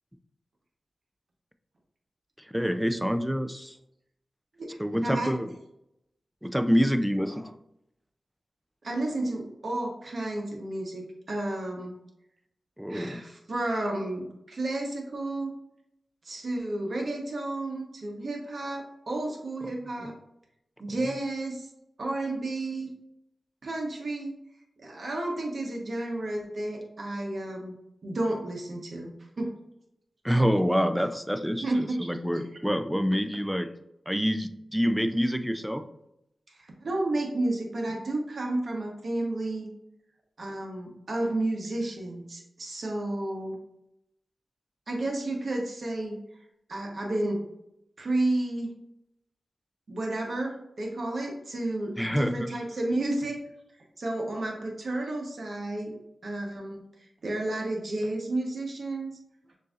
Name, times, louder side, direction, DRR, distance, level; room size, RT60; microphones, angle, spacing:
voice 1, 2.4-3.8 4.8-5.5 6.4-7.5 12.8-13.2 20.0-20.1 30.2-33.7 34.1-35.9 52.0-52.5, equal, 5° right, 8 dB, 0.4 m, -27 dB
voice 2, 4.6-5.4 8.8-12.0 12.9-15.5 16.2-20.1 20.8-21.7 22.0-22.9 23.6-24.4 24.8-27.7 28.0-29.1 29.4-29.6 31.5-32.1 36.5-39.7 40.4-43.6 44.9-46.2 46.7-47.4 48.0-48.7 49.9-53.4 54.0-56.0 56.2-59.1, right 2 dB, 65° right, 0 dB, 1.1 m, -31 dB
6.5 x 2.7 x 2.5 m, 0.82 s
cardioid pair, 50°, 0 cm